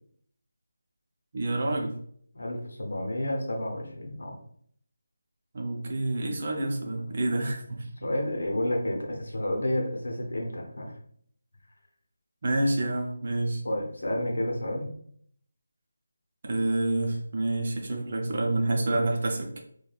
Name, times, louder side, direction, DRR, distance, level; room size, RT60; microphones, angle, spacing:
voice 1, 1.3-1.9 5.5-8.1 12.4-13.6 16.4-19.6, right 2 dB, 45° right, 1 dB, 0.6 m, -28 dB
voice 2, 2.3-4.4 7.0-7.2 8.0-11.0 13.6-14.9, left 1 dB, 75° left, 1 dB, 0.7 m, -30 dB
3.2 x 2.2 x 2.3 m, 0.63 s
figure-of-eight pair, 165°, 0 cm